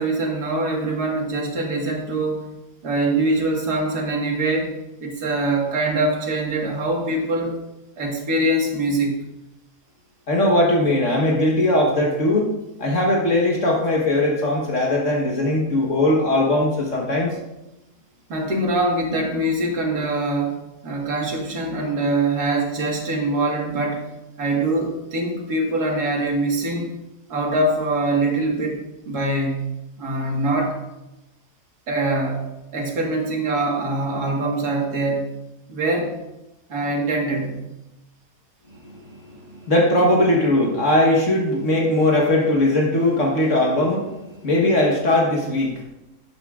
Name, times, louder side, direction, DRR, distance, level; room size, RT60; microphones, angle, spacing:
voice 1, 0.0-2.5 2.8-7.6 8.0-9.2 18.3-24.1 24.4-26.9 27.3-30.8 31.9-35.3 35.7-36.2 36.7-37.6, right 2 dB, 75° right, 0 dB, 2.2 m, -23 dB
voice 2, 10.3-12.5 12.8-17.4 38.8-39.0 39.2-44.1 44.4-45.8, left 1 dB, 50° left, -2 dB, 1.6 m, -19 dB
12.0 x 9.5 x 2.4 m, 0.93 s
omnidirectional pair, 1.7 m